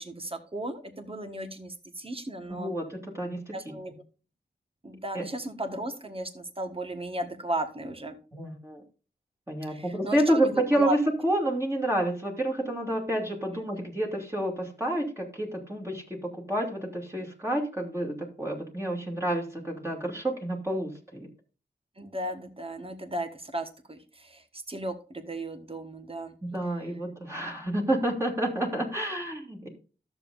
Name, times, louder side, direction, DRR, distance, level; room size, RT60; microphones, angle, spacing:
voice 1, 0.0-2.7 3.5-3.9 4.8-8.2 9.7-11.0 22.0-24.4 24.7-26.3, right 1 dB, 30° right, 6 dB, 1.5 m, -35 dB
voice 2, 2.5-3.7 5.1-5.3 8.3-8.8 9.5-21.3 26.4-29.7, right 1 dB, 15° right, -1 dB, 2.6 m, -29 dB
13.5 x 7.2 x 2.6 m, 0.36 s
wide cardioid pair, 60°, 19 cm